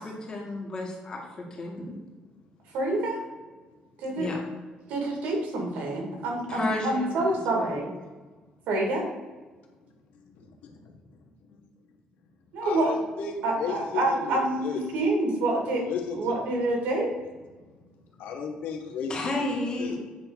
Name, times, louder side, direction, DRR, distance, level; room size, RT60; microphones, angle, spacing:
voice 1, 0.0-1.9 4.2-4.4 6.5-7.8 19.1-20.0, left 2 dB, 30° left, -1 dB, 2.2 m, -32 dB
voice 2, 2.7-3.2 4.0-4.3 4.9-7.9 8.7-9.0 12.5-12.9 13.4-15.8 16.1-17.1, right 2 dB, 85° right, 1 dB, 2.5 m, -27 dB
voice 3, 10.3-10.7 11.5-11.6 12.6-14.8 15.9-16.3 18.2-19.3 19.8-20.0, left 6 dB, 85° left, 2 dB, 1.4 m, -34 dB
8.9 x 3.5 x 6.3 m, 1.3 s
cardioid pair, 125°, 3 cm